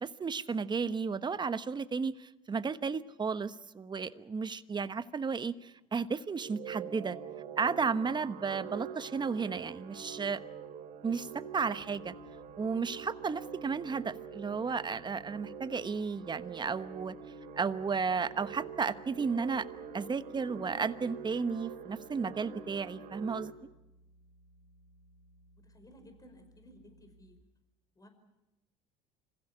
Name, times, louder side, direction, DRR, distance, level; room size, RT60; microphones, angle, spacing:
voice 1, 0.0-7.2 7.6-10.4 11.0-11.3 11.5-12.1 12.6-17.1 17.6-19.7 19.9-23.5, right 5 dB, 25° right, 13 dB, 1.1 m, -33 dB
sound 1, 6.3-23.5, right 7 dB, 55° right, 4.5 m, -45 dB
sound 2, 11.8-27.4, right 1 dB, 75° left, 5.1 m, -63 dB
voice 2, 25.6-27.4 27.9-28.1, equal, 20° left, 7 dB, 5.1 m, -57 dB
26.5 x 16.0 x 9.9 m, 0.98 s
supercardioid pair, 85°, 17 cm